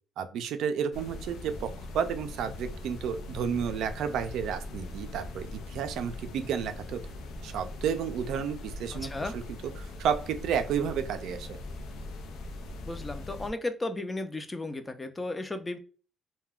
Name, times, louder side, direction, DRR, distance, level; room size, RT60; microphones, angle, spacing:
voice 1, 0.2-7.0 7.4-9.4 9.8-11.5, right 7 dB, 85° right, 8 dB, 0.4 m, -31 dB
sound 1, 0.9-13.5, left 2 dB, 85° left, 0.5 m, -41 dB
voice 2, 9.0-9.4 12.8-15.8, left 2 dB, 20° left, 8 dB, 0.4 m, -34 dB
2.3 x 2.2 x 3.5 m, 0.38 s
cardioid pair, 90°, 0 cm